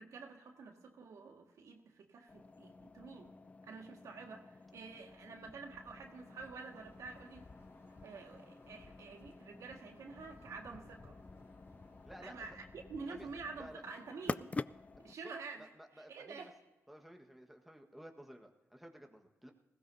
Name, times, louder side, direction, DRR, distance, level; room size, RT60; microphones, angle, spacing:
voice 1, 0.0-3.3 3.6-7.5 8.0-11.2 12.2-14.5 15.0-16.6, right 4 dB, 80° right, 2 dB, 1.8 m, -49 dB
sound 1, 2.3-15.1, left 3 dB, 25° left, 0.3 m, -49 dB
sound 2, 5.9-12.3, left 2 dB, 55° left, 4.0 m, -64 dB
voice 2, 12.0-12.5 13.1-13.3 13.5-13.8 15.0-15.3 15.6-16.5 16.9-19.5, equal, ahead, 2 dB, 1.4 m, -54 dB
19.5 x 16.5 x 2.7 m, 1.1 s
cardioid pair, 90°, 5 cm